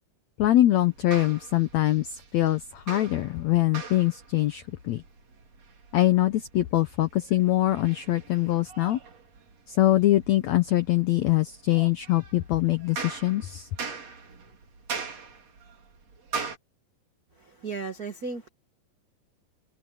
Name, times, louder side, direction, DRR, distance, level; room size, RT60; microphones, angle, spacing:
voice 1, 0.4-5.0 5.9-9.0 9.7-13.7, left 15 dB, 85° left, 1.5 m, -23 dB
sound 1, 0.8-16.6, right 5 dB, 45° right, 4.2 m, -42 dB
voice 2, 17.3-18.5, right 4 dB, 80° right, 0.8 m, -35 dB
omnidirectional pair, 4.3 m